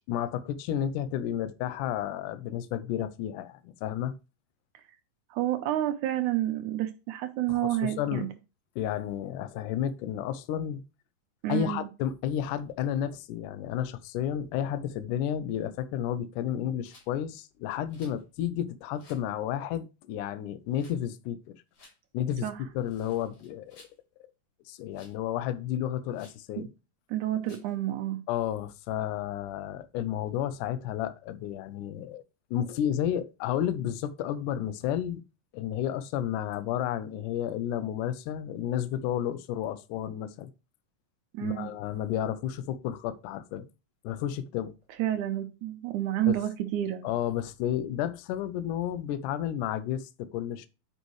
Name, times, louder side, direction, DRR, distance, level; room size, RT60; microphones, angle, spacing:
voice 1, 0.0-4.1 7.5-8.3 8.8-10.8 11.5-21.6 22.1-22.5 22.8-23.8 24.7-26.7 28.3-32.2 32.5-35.2 35.5-40.5 41.4-43.7 44.0-44.7 46.3-46.4 47.0-50.7, left 10 dB, 75° left, 2.0 m, -32 dB
voice 2, 5.3-8.3 11.4-11.9 22.4-22.6 26.6-26.7 27.1-28.2 41.3-41.7 45.0-47.0, right 13 dB, 75° right, 2.0 m, -29 dB
Rattle, 16.8-17.1 17.9-18.2 19.0-19.3 20.7-21.0 21.7-22.0 22.8-24.0 24.9-25.2 26.1-26.4 27.4-27.7, left 2 dB, 55° left, 4.0 m, -57 dB
10.0 x 5.5 x 3.1 m
omnidirectional pair, 4.1 m